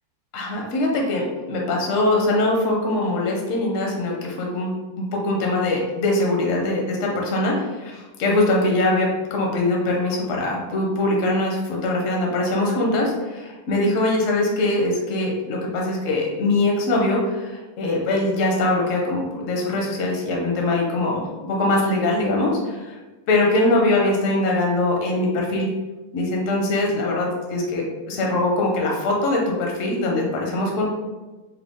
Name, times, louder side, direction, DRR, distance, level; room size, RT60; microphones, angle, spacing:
voice 1, 0.3-22.5 23.3-25.7 26.1-30.8, left 2 dB, 55° left, -1 dB, 0.9 m, -22 dB
4.6 x 2.2 x 3.6 m, 1.2 s
omnidirectional pair, 2.2 m